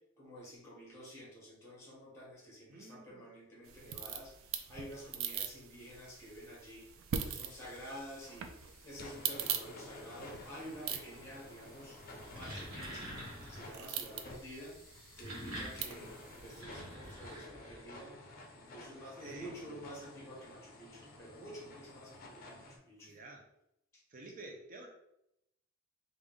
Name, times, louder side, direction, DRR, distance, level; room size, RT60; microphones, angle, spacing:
voice 1, 0.2-6.9 7.2-8.5 8.8-12.0 12.3-13.1 13.5-14.8 15.2-18.1 18.5-23.1 23.9-24.0, equal, 15° left, -5 dB, 1.5 m, -50 dB
voice 2, 2.7-3.3 15.8-16.2 18.9-19.9 23.0-23.5 24.1-24.9, right 2 dB, 40° right, 1 dB, 0.6 m, -52 dB
sound 1, 3.7-16.6, right 8 dB, 85° right, 0.4 m, -43 dB
sound 2, 5.8-6.4 7.1-22.8, left 2 dB, 45° left, 0.6 m, -53 dB
sound 3, 12.2-13.8 14.9-18.0, equal, 70° right, 1.3 m, -46 dB
3.4 x 2.6 x 3.6 m, 0.81 s
head